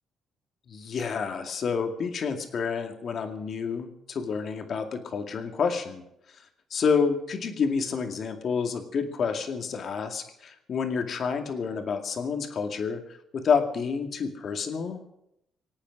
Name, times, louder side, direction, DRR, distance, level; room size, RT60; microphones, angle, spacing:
voice 1, 0.7-6.0 6.7-13.0 13.3-15.0, left 5 dB, 55° left, 5 dB, 2.3 m, -29 dB
25.0 x 8.8 x 6.1 m, 0.81 s
cardioid pair, 90°, 0 cm